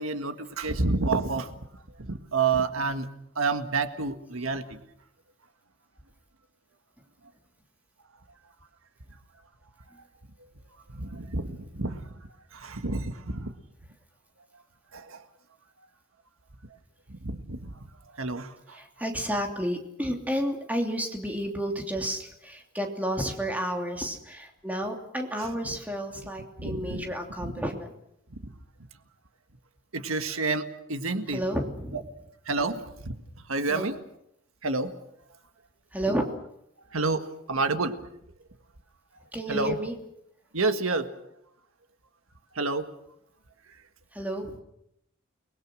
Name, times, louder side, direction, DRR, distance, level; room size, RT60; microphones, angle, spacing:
voice 1, 0.0-3.1 3.4-4.8 10.9-12.1 12.5-13.5 14.9-15.2 17.1-17.7 18.2-18.8 26.6-27.0 27.4-27.5 28.4-28.5 29.9-31.4 31.9-32.0 32.5-33.2 33.5-33.9 34.6-34.9 36.9-38.0 39.5-39.8 40.5-41.1 42.6-42.9, right 3 dB, 90° right, 8 dB, 1.7 m, -29 dB
voice 2, 18.7-27.9 31.3-32.0 33.7-33.9 35.9-36.3 39.3-39.9 44.1-44.6, equal, 10° right, 2 dB, 2.9 m, -31 dB
30.0 x 21.0 x 6.3 m, 0.77 s
head